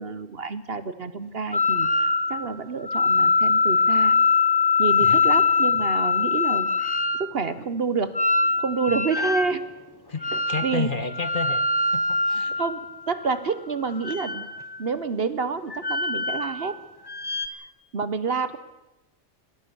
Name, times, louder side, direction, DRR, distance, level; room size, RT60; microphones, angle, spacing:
voice 1, 0.0-4.2 4.8-8.1 8.6-9.6 10.3-10.9 12.5-12.8 13.1-14.5 14.8-16.8 17.9-18.6, right 4 dB, 50° right, 13 dB, 1.2 m, -28 dB
sound 1, 1.5-2.5 2.9-7.3 8.1-9.6 10.2-10.8 11.1-13.3 14.0-14.8 15.7-16.7 17.1-17.5, left 4 dB, 20° left, 1.0 m, -23 dB
voice 2, 10.1-11.6 11.9-12.5, left 4 dB, 40° left, 11 dB, 1.4 m, -31 dB
23.0 x 18.5 x 6.9 m, 0.97 s
omnidirectional pair, 1.4 m